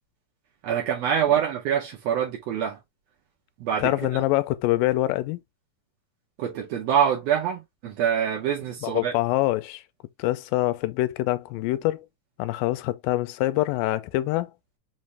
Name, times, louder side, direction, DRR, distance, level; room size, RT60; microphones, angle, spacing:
voice 1, 0.6-2.8 3.6-3.9 6.4-9.1, right 8 dB, 80° right, 1.4 m, -25 dB
voice 2, 3.8-5.4 8.8-9.8 10.2-12.1 12.4-14.5, left 17 dB, 85° left, 2.2 m, -25 dB
5.5 x 2.5 x 3.2 m
omnidirectional pair, 3.9 m